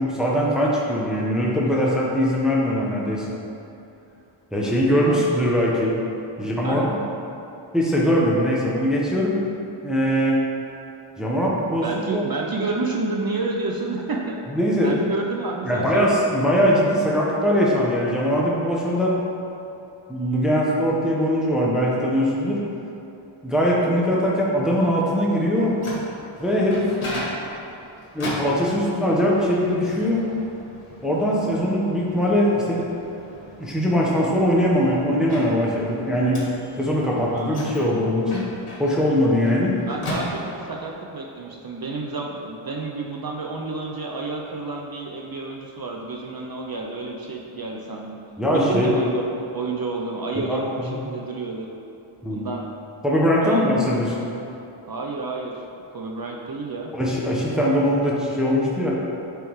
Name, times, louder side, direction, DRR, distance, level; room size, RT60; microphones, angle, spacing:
voice 1, 0.0-3.3 4.5-5.9 6.4-7.0 7.7-9.3 9.8-10.4 11.2-11.9 12.1-12.2 14.5-14.9 15.6-19.1 20.1-22.6 23.4-25.7 26.4-26.9 28.1-30.2 31.0-32.8 33.6-36.4 36.8-38.4 38.8-39.7 48.4-48.9 50.3-51.0 52.2-52.4 53.0-54.2 56.9-58.9, equal, ahead, -5 dB, 1.0 m, -21 dB
voice 2, 6.4-6.9 11.8-14.4 14.8-16.2 37.3-37.6 39.8-48.2 48.5-51.7 52.3-52.7 53.4-53.8 54.9-55.6 55.9-56.9, right 3 dB, 45° right, -1 dB, 0.6 m, -30 dB
Microwave oven, 25.4-40.9, left 1 dB, 80° left, 1.3 m, -37 dB
9.1 x 3.4 x 3.1 m, 2.9 s
cardioid pair, 50°, 50 cm